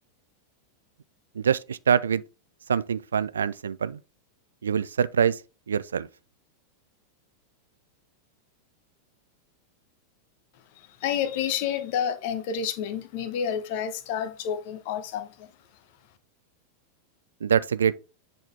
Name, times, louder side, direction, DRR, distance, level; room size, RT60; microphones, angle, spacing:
voice 1, 1.4-2.2 2.7-4.0 4.6-5.4 5.7-6.1 17.4-17.9, right 7 dB, 70° right, 0.3 m, -24 dB
voice 2, 11.0-15.5, left 8 dB, 50° left, 1.0 m, -29 dB
8.0 x 4.2 x 3.4 m
figure-of-eight pair, 90°, 0 cm